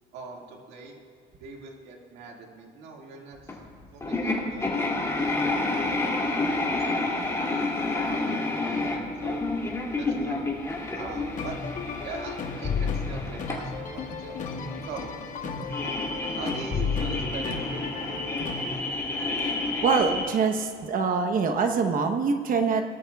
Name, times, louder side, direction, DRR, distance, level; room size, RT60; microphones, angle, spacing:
voice 1, 0.1-1.0 1.4-3.6 3.9-5.4 6.0-7.5 7.9-9.5 10.0-10.5 10.9-11.6 12.0-15.1 16.4-18.3, right 4 dB, 85° right, 1 dB, 2.0 m, -42 dB
sound 1, 3.5-3.6 4.0-20.2, left 2 dB, 15° left, 2.5 m, -30 dB
sound 2, 10.7-19.0, left 5 dB, 50° left, 1.2 m, -33 dB
voice 2, 19.8-22.8, right 5 dB, 55° right, 6 dB, 1.0 m, -24 dB
19.0 x 13.0 x 2.3 m, 2.3 s
cardioid pair, 110°, 17 cm